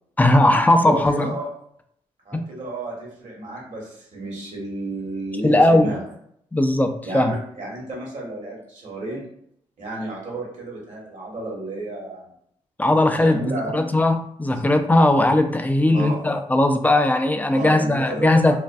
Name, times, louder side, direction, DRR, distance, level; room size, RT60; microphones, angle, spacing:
voice 1, 0.2-1.4 2.3-2.4 5.4-5.9 6.5-7.3 12.8-18.6, left 1 dB, 10° left, 7 dB, 0.3 m, -18 dB
voice 2, 0.8-1.5 2.2-6.0 7.0-9.3 9.8-12.3 12.9-13.7 14.5-14.6 15.9-16.2 17.5-18.6, right 2 dB, 60° right, -3 dB, 1.2 m, -32 dB
2.5 x 2.2 x 2.3 m, 0.69 s
hypercardioid pair, 45°, 14 cm